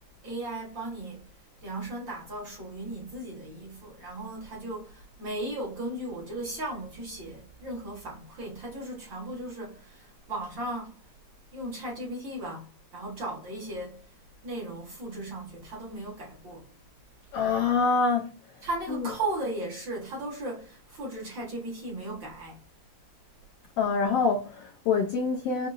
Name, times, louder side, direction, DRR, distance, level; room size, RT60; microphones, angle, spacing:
voice 1, 0.2-1.3 1.6-11.0 11.5-14.2 14.4-16.7 18.6-22.6, right 1 dB, 50° right, 1.6 m, -36 dB
voice 2, 17.3-18.3 18.9-19.0 23.8-25.7, left 4 dB, 85° left, 1.3 m, -25 dB
4.9 x 2.8 x 2.4 m
omnidirectional pair, 3.6 m